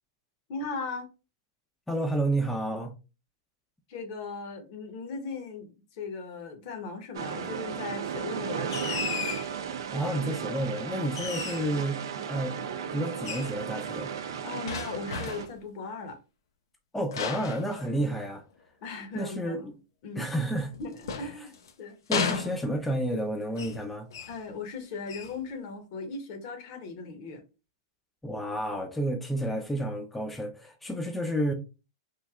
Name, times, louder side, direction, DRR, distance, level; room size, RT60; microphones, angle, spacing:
voice 1, 0.5-1.1 3.9-5.7 6.0-9.1 11.2-11.4 14.4-16.2 18.8-19.6 20.0-20.3 20.8-21.5 21.8-22.0 24.3-27.4, left 4 dB, 55° left, 0.9 m, -38 dB
voice 2, 1.9-2.9 9.7-12.0 12.3-12.6 12.9-14.1 16.9-18.4 19.1-19.7 20.2-20.7 22.1-24.1 28.2-31.5, right 1 dB, 5° left, 0.5 m, -30 dB
sound 1, 7.1-15.4, right 7 dB, 75° right, 0.4 m, -35 dB
sound 2, 8.7-9.5 11.1-11.8 13.2-13.6 14.7-15.6 17.1-18.4 20.6-21.7 22.1-23.0 23.6-23.8 24.1-24.4 25.1-25.4, left 6 dB, 80° left, 0.5 m, -34 dB
3.1 x 2.6 x 2.3 m
hypercardioid pair, 115°, 2 cm